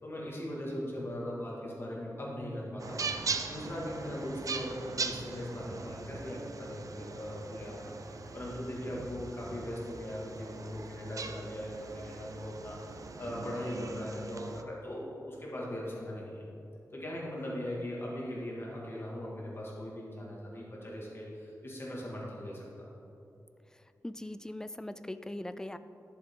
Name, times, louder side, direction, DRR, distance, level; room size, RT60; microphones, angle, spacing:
voice 1, 0.0-16.4 16.9-22.9, left 1 dB, 35° left, -4 dB, 2.1 m, -39 dB
sound 1, 2.8-14.6, right 4 dB, 55° right, 0.5 m, -40 dB
voice 2, 24.0-25.8, left 1 dB, 10° left, 11 dB, 0.3 m, -40 dB
11.5 x 7.0 x 3.7 m, 2.7 s
wide cardioid pair, 140°, 7 cm